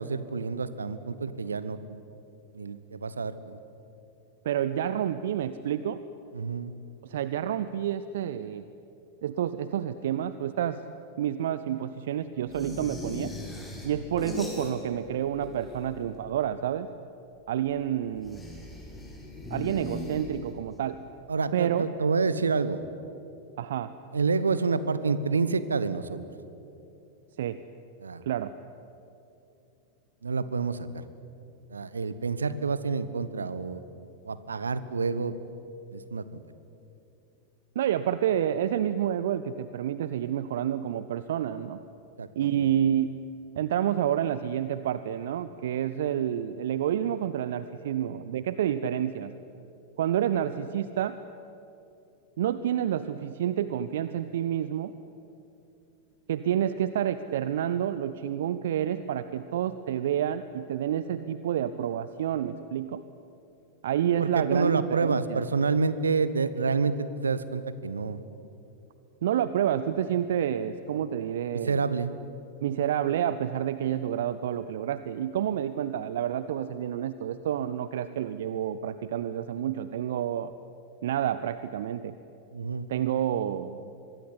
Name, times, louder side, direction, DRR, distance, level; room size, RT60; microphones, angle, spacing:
voice 1, 0.0-2.0 2.5-3.6 6.3-6.7 21.3-22.8 24.1-26.2 28.0-28.2 30.2-31.0 31.7-33.8 34.2-35.3 35.9-36.4 42.2-42.6 64.2-68.2 71.5-72.1 82.5-82.9, right 4 dB, 75° right, 14 dB, 1.3 m, -28 dB
voice 2, 4.4-6.0 7.0-8.7 9.2-10.8 11.2-13.3 13.8-16.9 17.5-18.4 19.5-21.0 21.5-21.8 23.6-23.9 27.4-27.6 28.2-28.5 37.7-41.8 42.3-43.2 43.6-49.3 50.0-51.2 52.4-54.9 56.3-63.0 63.8-65.4 69.2-71.8 72.6-80.5 81.0-82.2 82.9-83.9, right 10 dB, 60° right, 13 dB, 0.8 m, -29 dB
sound 1, 12.5-15.1 15.3-16.2 18.2-20.7, left 1 dB, 10° left, 6.6 m, -38 dB
25.0 x 22.0 x 9.9 m, 2.8 s
figure-of-eight pair, 90°, 0 cm